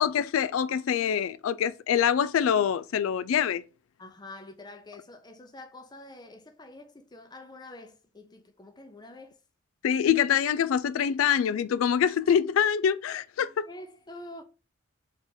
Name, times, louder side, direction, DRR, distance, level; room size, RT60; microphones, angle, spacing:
voice 1, 0.0-3.6 9.8-13.6, left 8 dB, 85° left, 0.3 m, -25 dB
voice 2, 4.0-9.4 13.4-14.4, left 2 dB, 20° left, 0.7 m, -46 dB
3.6 x 3.6 x 3.9 m
head